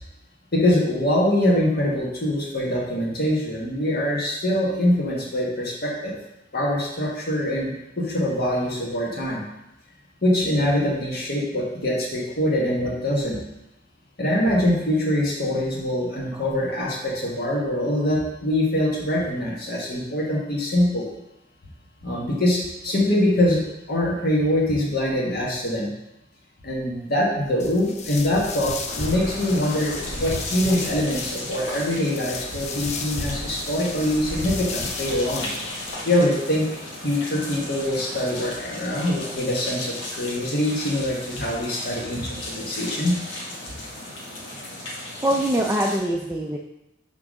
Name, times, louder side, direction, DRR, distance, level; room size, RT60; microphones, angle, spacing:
voice 1, 0.5-6.1 6.5-9.4 10.2-13.4 14.2-21.0 22.0-25.9 26.6-35.5 36.0-36.7 37.0-43.1, left 1 dB, 55° left, -3 dB, 1.5 m, -24 dB
sound 1, 27.6-35.9, left 3 dB, 35° left, 0.6 m, -33 dB
sound 2, 28.9-46.0, left 1 dB, 80° left, 1.9 m, -36 dB
voice 2, 45.2-46.6, right 1 dB, 15° right, -1 dB, 0.5 m, -23 dB
5.9 x 3.9 x 6.2 m, 0.89 s
head